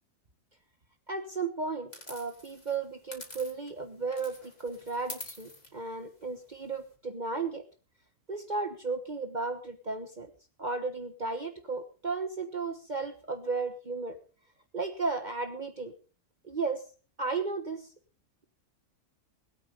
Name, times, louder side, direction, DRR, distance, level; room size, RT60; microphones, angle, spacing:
voice 1, 1.1-7.6 8.3-10.3 10.6-14.2 14.7-15.9 16.4-16.8 17.2-17.9, right 4 dB, 35° right, 7 dB, 1.3 m, -34 dB
sound 1, 1.9-3.8 4.1-6.9, left 1 dB, 30° left, 3.3 m, -47 dB
20.0 x 9.2 x 5.2 m, 0.37 s
omnidirectional pair, 1.4 m